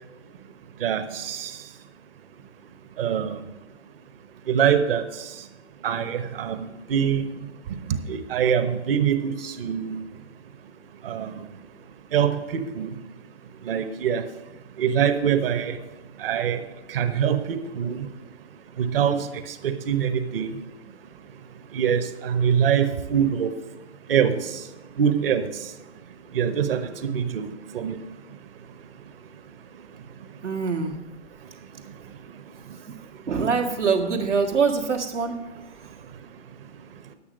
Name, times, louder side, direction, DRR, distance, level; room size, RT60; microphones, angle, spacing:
voice 1, 0.8-1.5 3.0-3.3 4.5-5.0 5.8-7.3 8.1-10.0 11.0-11.3 12.1-12.9 13.6-14.2 14.8-15.8 16.2-16.6 16.9-18.0 18.8-19.3 19.6-20.5 21.7-23.5 24.1-24.4 25.0-25.4 26.3-26.8 27.1-27.5 27.7-28.0, right 8 dB, 55° right, 9 dB, 1.1 m, -23 dB
voice 2, 30.4-31.0 33.3-36.0, right 5 dB, 90° right, 1 dB, 1.8 m, -24 dB
10.0 x 8.6 x 5.2 m, 1.1 s
hypercardioid pair, 125°, 35 cm